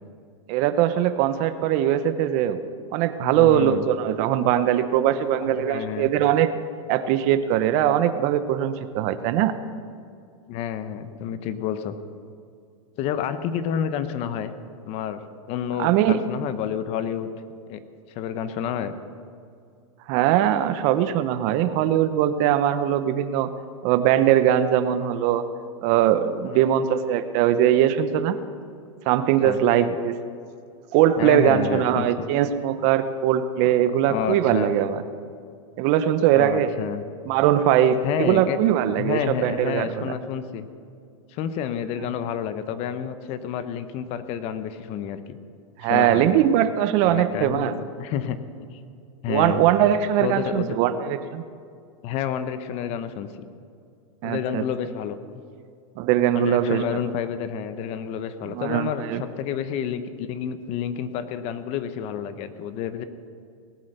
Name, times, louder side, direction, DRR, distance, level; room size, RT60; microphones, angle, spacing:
voice 1, 0.5-2.6 2.9-6.5 6.9-9.5 15.8-16.2 20.1-23.5 23.8-25.4 25.8-28.4 29.1-30.2 30.9-35.0 35.8-36.7 37.3-40.1 45.8-47.7 49.3-51.4 54.2-54.6 56.0-57.0 58.5-59.2, right 11 dB, 40° right, 12 dB, 0.8 m, -21 dB
voice 2, 3.2-3.9 5.1-6.1 10.5-12.0 13.0-14.5 14.9-15.2 15.5-17.3 17.7-17.8 18.1-18.9 26.5-26.7 29.4-29.6 31.2-32.1 34.1-34.7 36.3-37.0 38.0-38.6 39.0-40.7 41.3-45.4 45.8-46.3 47.0-48.4 49.2-49.6 50.2-50.8 52.0-53.3 54.2-55.2 56.3-63.0, left 9 dB, 35° left, 11 dB, 0.9 m, -29 dB
18.5 x 8.7 x 6.6 m, 2.4 s
supercardioid pair, 140°, 18 cm